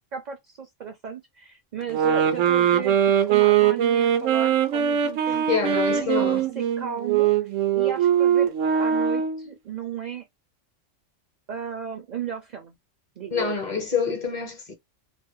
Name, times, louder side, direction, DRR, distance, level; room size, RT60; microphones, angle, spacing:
voice 1, 0.1-5.5 5.9-6.3 6.6-7.3 7.7-8.5 8.8-10.3 11.5-12.8 13.2-13.5, right 7 dB, 55° right, 0.5 m, -35 dB
sound 1, 1.9-9.5, right 9 dB, 85° right, 0.9 m, -21 dB
voice 2, 5.5-6.5 13.3-14.7, left 6 dB, 40° left, 0.8 m, -26 dB
2.5 x 2.1 x 2.6 m
omnidirectional pair, 1.3 m